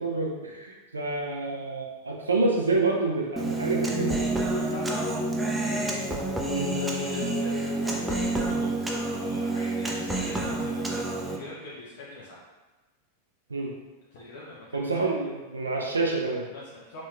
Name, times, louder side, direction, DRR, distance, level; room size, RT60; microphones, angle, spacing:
voice 1, 0.0-4.2 6.5-6.8 13.5-13.7 14.7-16.5, right 3 dB, 75° right, 0 dB, 0.4 m, -28 dB
Human voice, 3.4-11.4, right 2 dB, 10° right, 0.4 m, -28 dB
voice 2, 4.5-5.0 6.7-12.4 14.1-15.2 16.5-17.0, left 1 dB, 55° left, -6 dB, 0.5 m, -43 dB
3.0 x 2.9 x 2.3 m, 1.2 s
figure-of-eight pair, 90°, 0 cm